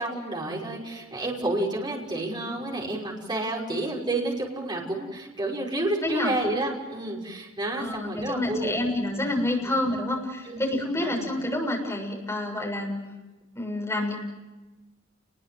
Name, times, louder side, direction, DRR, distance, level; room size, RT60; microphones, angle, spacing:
voice 1, 0.0-8.7 9.2-9.8 10.5-11.3, right 1 dB, 20° right, -1 dB, 5.8 m, -30 dB
voice 2, 6.0-6.4 7.8-13.0 13.6-14.2, left 1 dB, 15° left, 0 dB, 7.1 m, -28 dB
29.5 x 22.0 x 7.8 m, 1.1 s
head